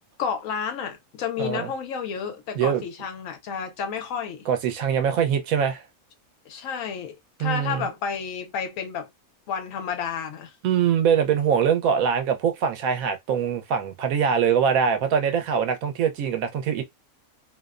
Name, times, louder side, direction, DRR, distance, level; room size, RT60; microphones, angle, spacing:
voice 1, 0.2-4.5 6.5-9.1 9.5-10.5, left 7 dB, 75° left, 1.0 m, -31 dB
voice 2, 1.4-1.7 2.6-2.8 4.5-5.8 7.4-7.9 10.6-16.8, right 7 dB, 90° right, 1.1 m, -23 dB
2.8 x 2.0 x 2.3 m
omnidirectional pair, 1.4 m